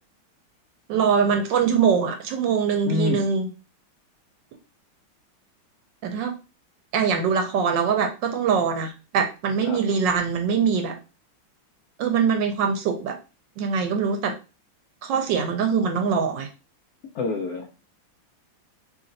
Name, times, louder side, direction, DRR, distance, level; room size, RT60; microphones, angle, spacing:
voice 1, 0.9-3.5 6.0-6.3 6.9-11.0 12.0-13.2 13.6-14.4 15.0-16.5, right 6 dB, 75° right, 5 dB, 1.2 m, -23 dB
voice 2, 2.9-3.3 9.6-9.8 17.1-17.7, left 2 dB, 85° left, 3 dB, 0.8 m, -26 dB
3.0 x 2.5 x 3.8 m, 0.31 s
omnidirectional pair, 2.2 m